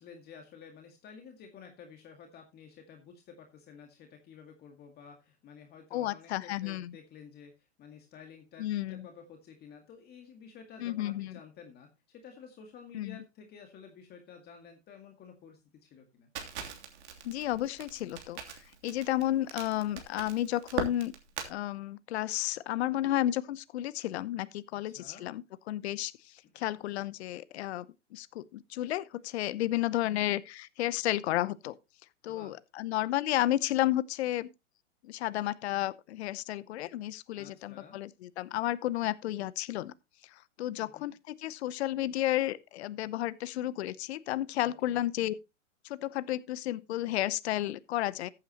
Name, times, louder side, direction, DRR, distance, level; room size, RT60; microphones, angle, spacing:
voice 1, 0.0-16.3 24.9-25.3 30.0-30.3 32.3-32.6 37.3-38.0 40.8-41.1 44.6-45.1, left 6 dB, 25° left, 2.0 m, -52 dB
voice 2, 5.9-6.9 8.6-9.1 10.8-11.4 12.9-13.2 17.2-21.1 21.4-26.1 26.5-31.8 32.2-34.5 35.0-39.9 40.3-45.3 45.8-48.3, left 14 dB, 60° left, 0.8 m, -32 dB
Crackle, 16.4-21.5, right 8 dB, 65° right, 3.1 m, -40 dB
14.5 x 8.8 x 2.9 m
hypercardioid pair, 130°, 37 cm